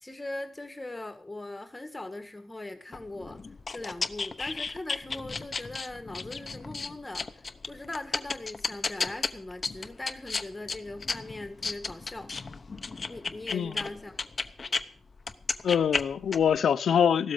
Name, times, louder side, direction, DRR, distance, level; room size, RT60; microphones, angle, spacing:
voice 1, 0.0-3.4 3.7-12.3 13.1-14.1, left 2 dB, 10° left, 1.7 m, -40 dB
sound 1, 2.9-14.8 15.2-16.6, left 4 dB, 30° left, 0.9 m, -34 dB
voice 2, 15.6-17.3, left 8 dB, 65° left, 0.7 m, -24 dB
15.5 x 13.0 x 5.1 m
wide cardioid pair, 175°, 0 cm